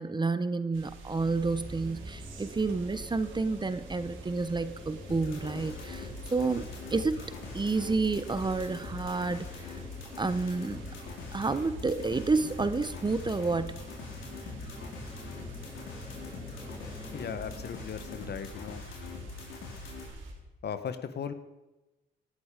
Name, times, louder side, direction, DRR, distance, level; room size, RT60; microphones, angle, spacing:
voice 1, 0.0-7.3 7.5-9.7 10.2-10.8 11.3-13.8, right 3 dB, 20° right, 13 dB, 0.9 m, -30 dB
sound 1, 0.7-20.3, right 2 dB, 75° right, 3.5 m, -49 dB
sound 2, 1.2-18.6, equal, 5° left, 3.2 m, -47 dB
sound 3, 5.1-20.1, left 4 dB, 85° left, 4.4 m, -43 dB
voice 2, 17.1-18.8 20.6-21.3, left 7 dB, 55° left, 11 dB, 1.4 m, -37 dB
18.0 x 11.5 x 5.1 m, 1.0 s
cardioid pair, 90°, 20 cm